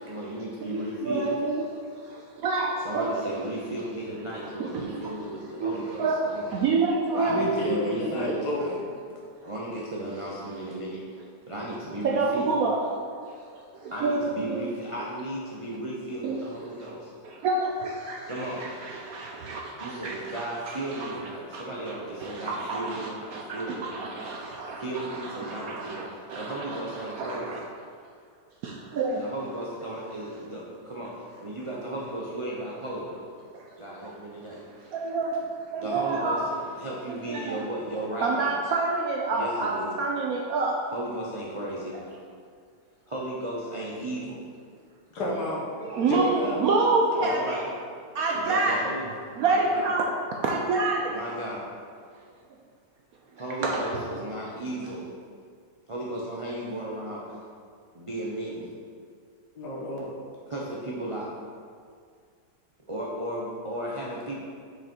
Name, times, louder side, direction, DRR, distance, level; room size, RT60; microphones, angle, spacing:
voice 1, 0.0-1.3 2.8-6.1 6.3-6.5 7.2-8.8 9.4-11.2 11.5-12.5 13.9-17.1 18.3-18.7 19.8-24.5 24.8-27.5 29.2-33.2 33.8-34.6 35.8-36.4 36.7-38.6 39.3-39.9 40.9-42.0 43.1-44.5 47.2-48.0 48.3-49.9 51.1-51.7 53.4-55.1 55.9-57.4 57.9-58.7 60.5-61.3 62.9-64.4, right 1 dB, 45° right, -5 dB, 0.4 m, -35 dB
voice 2, 0.7-1.6 2.0-3.1 4.6-5.1 5.6-7.5 9.4-9.5 12.0-12.9 13.5-14.6 16.2-16.9 17.2-21.2 21.5-27.6 28.6-29.2 33.5-33.7 34.0-34.1 34.8-35.4 35.7-36.5 37.1-37.6 38.2-40.8 45.7-47.7 48.1-48.8 49.4-50.1 50.4-51.1 53.6-54.0, right 3 dB, 70° right, 0 dB, 0.9 m, -28 dB
voice 3, 7.3-9.0 45.1-45.7 46.1-46.6 59.6-60.1, left 1 dB, 65° left, -4 dB, 1.8 m, -29 dB
6.2 x 5.1 x 4.5 m, 2.1 s
omnidirectional pair, 1.9 m